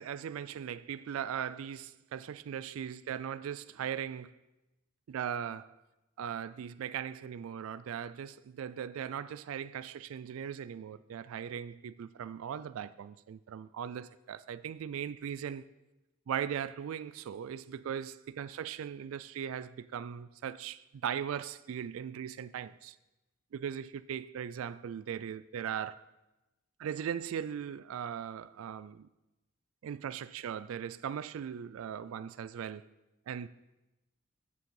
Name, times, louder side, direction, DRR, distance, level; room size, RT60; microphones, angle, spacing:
voice 1, 0.0-4.4 5.1-5.8 6.2-15.7 16.3-23.0 23.5-26.1 26.8-29.1 29.8-32.8 33.3-33.5, right 8 dB, 80° right, 0.3 m, -39 dB
7.2 x 6.3 x 7.0 m
head